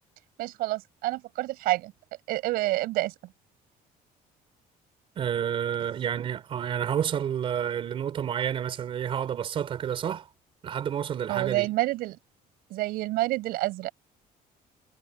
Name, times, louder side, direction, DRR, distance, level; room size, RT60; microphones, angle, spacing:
voice 1, 0.4-1.9 2.3-3.1 11.3-12.2 12.7-13.9, right 18 dB, 80° right, 6.0 m, -28 dB
voice 2, 5.2-10.3 10.6-11.7, right 9 dB, 35° right, 4.4 m, -29 dB
cardioid pair, 180°, 15 cm